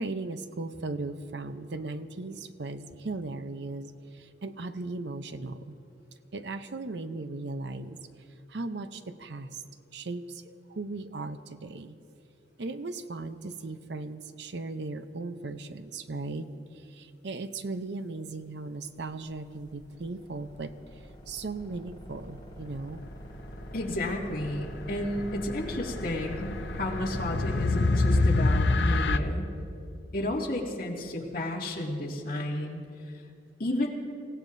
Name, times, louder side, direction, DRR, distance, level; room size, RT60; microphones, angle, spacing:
voice 1, 0.0-5.7 6.3-8.0 8.5-9.6 9.9-12.0 12.6-20.7 21.3-23.0, right 3 dB, 70° right, 10 dB, 0.7 m, -37 dB
sound 1, 19.3-28.3, equal, 25° left, 2.6 m, -41 dB
voice 2, 23.7-29.4 30.1-33.1 33.6-33.9, left 1 dB, 50° left, -2 dB, 2.2 m, -32 dB
sound 2, 25.1-29.2, left 2 dB, 75° left, 0.6 m, -26 dB
26.5 x 17.0 x 2.7 m, 2.5 s
head